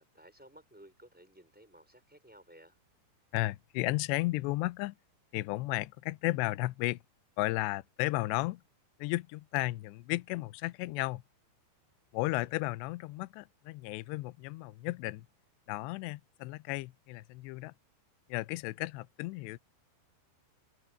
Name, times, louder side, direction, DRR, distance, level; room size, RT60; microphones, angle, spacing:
voice 1, 0.0-2.7 12.2-12.5, right 1 dB, ahead, 4.9 m, -57 dB
voice 2, 3.3-5.0 5.3-7.0 7.4-8.6 9.0-11.2 12.1-15.3 15.7-17.7 18.3-19.6, left 20 dB, 80° left, 2.7 m, -34 dB
omnidirectional pair, 5.3 m